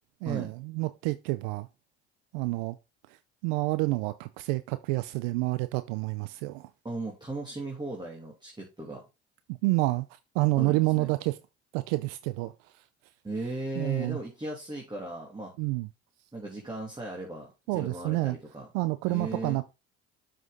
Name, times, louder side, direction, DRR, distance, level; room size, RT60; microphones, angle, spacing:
voice 1, 0.2-1.7 2.3-2.8 3.1-3.2 3.4-6.7 9.6-10.1 10.3-11.4 11.7-12.8 13.8-14.2 15.6-15.9 17.7-18.4 18.7-19.7, right 22 dB, 80° right, 0.6 m, -28 dB
voice 2, 6.8-9.0 10.6-11.1 13.2-15.5 16.3-18.6 19.0-19.6, right 2 dB, 15° right, 3.0 m, -37 dB
7.3 x 6.1 x 3.9 m
supercardioid pair, 75°, 29 cm